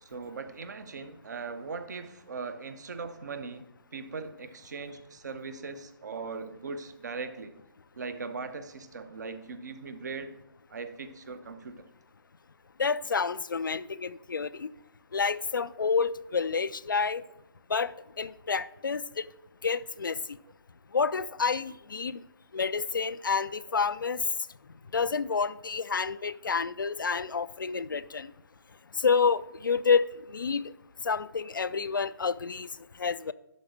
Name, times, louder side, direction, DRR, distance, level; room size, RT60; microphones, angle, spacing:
voice 1, 0.0-7.6 8.0-10.3 10.7-11.9, right 4 dB, 50° right, 0.9 m, -39 dB
voice 2, 12.8-14.7 15.1-17.2 17.7-19.3 19.6-20.2 20.9-22.2 22.5-24.2 24.9-28.3 29.0-30.6 31.0-32.7 33.0-33.3, left 5 dB, 65° left, 0.4 m, -29 dB
11.5 x 4.1 x 6.1 m
figure-of-eight pair, 135°, 12 cm